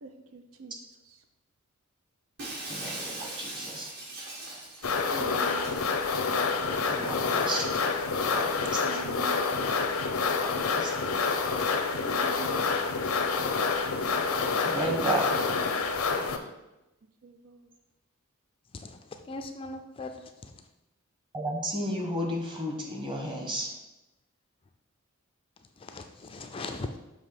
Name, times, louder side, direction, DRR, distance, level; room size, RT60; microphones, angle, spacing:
voice 1, 0.0-0.7 5.1-5.6 8.8-9.5 12.0-12.6 17.2-17.6, right 4 dB, 70° right, 7 dB, 0.5 m, -43 dB
Shatter, 2.4-5.8, right 2 dB, 55° right, 1.7 m, -40 dB
voice 2, 2.7-4.0 6.9-7.8 8.2-9.1 10.4-11.0 11.6-11.7 14.1-15.4 21.3-23.8, right 1 dB, 25° right, 0 dB, 1.3 m, -33 dB
sound 1, 4.8-16.4, left 4 dB, 90° left, 0.7 m, -28 dB
voice 3, 18.7-20.5 25.8-27.0, left 2 dB, 25° left, 6 dB, 0.4 m, -39 dB
6.7 x 2.9 x 5.8 m, 0.97 s
head